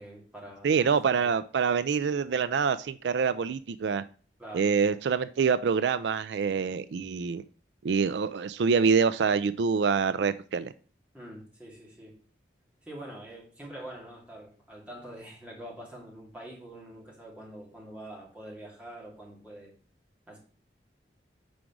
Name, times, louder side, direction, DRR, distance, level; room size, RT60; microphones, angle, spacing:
voice 1, 0.0-0.7 1.0-1.4 4.4-4.7 11.1-12.2 12.8-19.7 20.3-20.4, right 1 dB, 5° right, -3 dB, 2.4 m, -45 dB
voice 2, 0.6-4.0 4.5-7.4 7.8-10.7, right 5 dB, 80° right, 14 dB, 0.4 m, -26 dB
5.2 x 4.9 x 6.0 m, 0.40 s
head